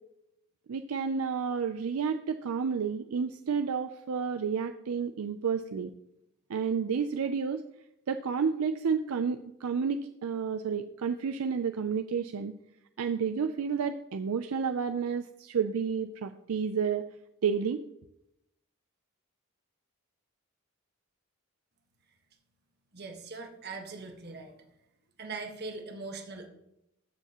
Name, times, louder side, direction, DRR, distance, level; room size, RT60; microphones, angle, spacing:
voice 1, 0.7-5.9 6.5-7.6 8.1-12.5 13.0-17.0 17.4-17.8, right 6 dB, 75° right, 9 dB, 0.4 m, -30 dB
voice 2, 22.9-24.6 25.2-26.5, right 3 dB, 50° right, 4 dB, 1.4 m, -41 dB
13.5 x 7.2 x 3.0 m, 0.82 s
head